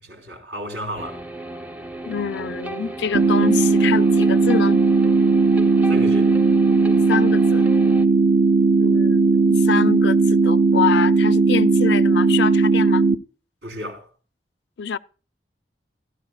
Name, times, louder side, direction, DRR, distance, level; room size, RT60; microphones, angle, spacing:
voice 1, 0.0-1.2 5.9-6.4 13.6-14.0, equal, 80° right, 4.3 m, -32 dB
sound 1, 1.0-8.0, right 2 dB, 10° right, 0.7 m, -35 dB
voice 2, 2.0-4.8 7.1-7.7 8.8-13.1 14.8-15.0, left 7 dB, 75° left, 0.4 m, -26 dB
sound 2, 3.1-13.2, right 3 dB, 50° right, 0.6 m, -17 dB
16.0 x 13.5 x 2.3 m
head